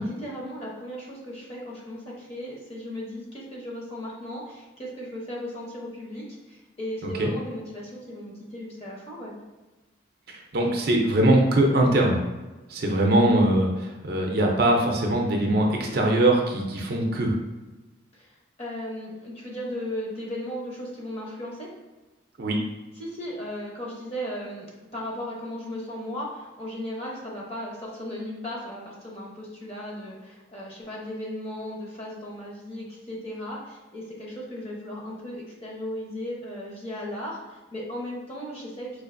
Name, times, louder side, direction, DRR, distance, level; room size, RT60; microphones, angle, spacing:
voice 1, 0.0-9.4 18.1-21.7 23.0-39.0, left 1 dB, 30° left, -4 dB, 0.8 m, -36 dB
voice 2, 10.3-12.2 12.7-17.3 22.4-22.6, right 1 dB, 50° right, 0 dB, 0.5 m, -22 dB
4.5 x 2.5 x 2.5 m, 1.2 s
head